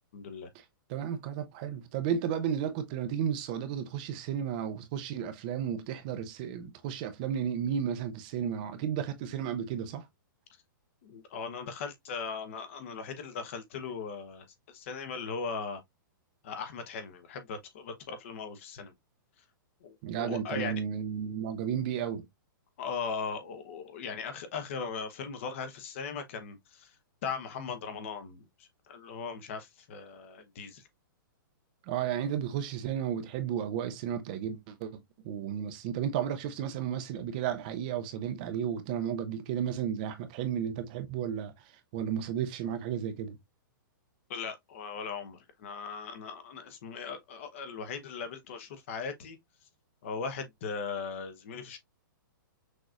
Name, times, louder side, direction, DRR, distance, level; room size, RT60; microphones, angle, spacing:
voice 1, 0.1-0.5 11.0-15.8 16.4-18.9 19.8-20.8 22.8-26.9 27.2-30.8 44.3-49.4 50.0-51.8, left 5 dB, 35° left, 0.9 m, -38 dB
voice 2, 0.9-10.1 20.0-22.2 31.8-43.4, right 9 dB, 25° right, 0.5 m, -33 dB
6.2 x 2.9 x 2.4 m
hypercardioid pair, 175°, 12 cm